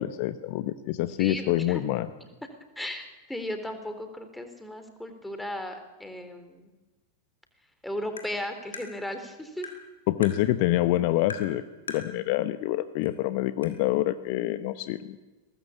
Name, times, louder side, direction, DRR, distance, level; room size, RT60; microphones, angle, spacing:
voice 1, 0.0-2.1 10.1-11.6 11.9-15.2, left 15 dB, 45° left, 13 dB, 1.0 m, -26 dB
voice 2, 1.2-1.8 2.8-6.7 7.8-9.7, left 1 dB, 5° left, 7 dB, 3.6 m, -36 dB
Tap, 8.2-8.3 8.7-8.9 9.6-9.8 10.2-10.4 11.3-11.5 11.9-12.1 13.0-13.1 13.6-13.7, left 5 dB, 70° left, 3.8 m, -38 dB
22.5 x 19.0 x 8.5 m, 1.2 s
figure-of-eight pair, 90°, 0 cm